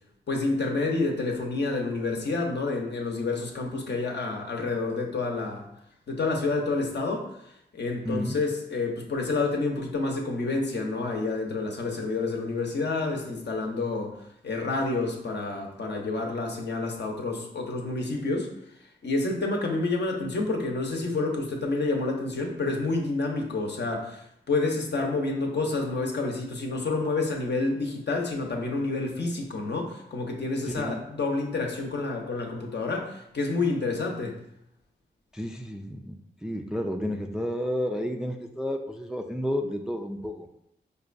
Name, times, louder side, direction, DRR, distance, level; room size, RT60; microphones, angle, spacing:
voice 1, 0.3-5.7 6.1-7.3 7.7-14.1 14.4-18.5 19.0-34.4, left 3 dB, 60° left, 1 dB, 0.7 m, -29 dB
voice 2, 8.0-8.4 30.7-31.0 35.3-36.2 36.4-40.5, equal, 5° right, 3 dB, 0.3 m, -31 dB
4.8 x 2.2 x 2.5 m, 0.77 s
cardioid pair, 45°, 20 cm